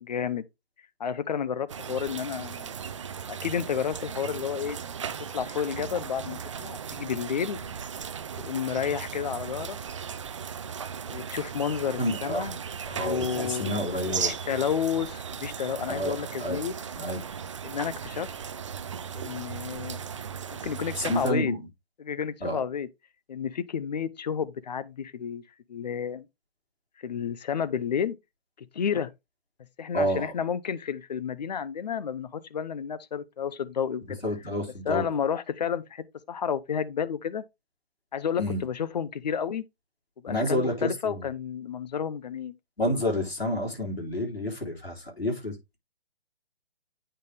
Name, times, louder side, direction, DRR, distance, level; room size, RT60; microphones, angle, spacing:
voice 1, 0.0-0.4 1.0-2.7 3.3-4.8 5.3-7.6 8.4-9.8 11.1-12.6 13.0-13.8 14.2-16.7 17.6-18.3 19.1-20.1 20.5-21.5 22.0-22.9 23.3-25.4 25.7-26.2 27.0-28.2 28.7-29.1 29.8-34.2 34.9-37.4 38.1-39.6 40.2-42.6, left 7 dB, 45° left, 0.7 m, -31 dB
sound 1, 1.7-21.3, right 7 dB, 30° right, 0.4 m, -37 dB
voice 2, 12.0-12.4 12.9-14.3 15.9-16.6 17.0-17.2 20.9-21.7 22.4-22.6 29.9-30.3 34.2-35.1 38.4-38.6 40.3-41.3 42.8-45.8, left 1 dB, 90° left, 3.6 m, -29 dB
8.8 x 3.9 x 3.4 m
figure-of-eight pair, 135°, 30 cm